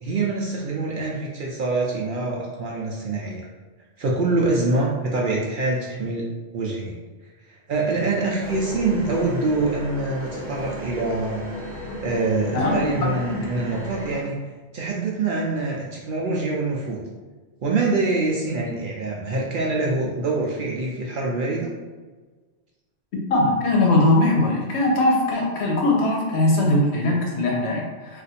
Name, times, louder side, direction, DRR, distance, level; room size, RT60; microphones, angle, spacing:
voice 1, 0.0-3.5 4.0-7.0 7.5-11.4 12.0-14.4 14.7-17.0 17.6-21.7, right 3 dB, 60° right, -3 dB, 0.6 m, -25 dB
sound 1, 8.4-14.2, left 1 dB, 15° right, 1.0 m, -34 dB
voice 2, 23.3-28.2, left 2 dB, 70° left, -2 dB, 1.0 m, -20 dB
2.5 x 2.4 x 4.0 m, 1.4 s
omnidirectional pair, 1.2 m